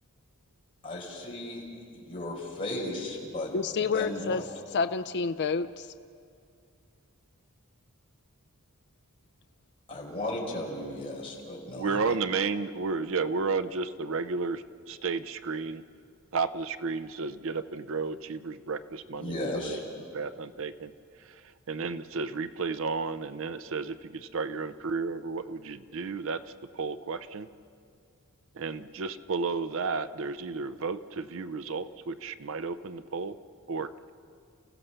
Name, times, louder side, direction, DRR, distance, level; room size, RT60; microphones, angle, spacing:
voice 1, 0.8-1.6 1.9-3.5 3.9-4.4 9.9-12.1 19.2-19.8, left 1 dB, 25° left, -4 dB, 4.6 m, -35 dB
voice 2, 3.5-4.4 4.7-5.9, left 5 dB, 50° left, 9 dB, 0.5 m, -29 dB
voice 3, 11.8-15.8 16.3-19.8 20.1-20.9 21.3-21.4 21.7-26.4 26.7-27.5 28.6-33.4 33.7-34.1, right 4 dB, 60° right, 13 dB, 0.6 m, -32 dB
29.5 x 15.5 x 6.7 m, 2.3 s
head